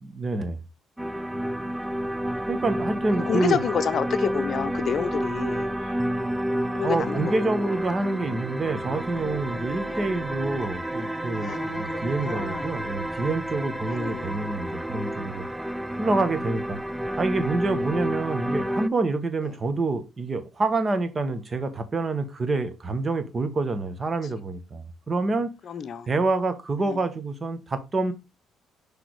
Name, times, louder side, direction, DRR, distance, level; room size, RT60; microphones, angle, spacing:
voice 1, 0.0-0.6 2.5-3.6 6.8-15.5 16.0-16.8 17.2-25.5 26.1-28.1, right 3 dB, 35° right, 1.2 m, -27 dB
sound 1, 1.0-18.9, equal, 5° right, 0.4 m, -30 dB
voice 2, 3.3-5.7 6.7-7.7 9.8-10.0 11.3-12.8 13.9-14.4 25.6-26.1, left 7 dB, 55° left, 0.6 m, -30 dB
sound 2, 5.2-12.7, right 7 dB, 85° right, 1.2 m, -52 dB
6.1 x 3.4 x 4.6 m
hypercardioid pair, 60°, 0 cm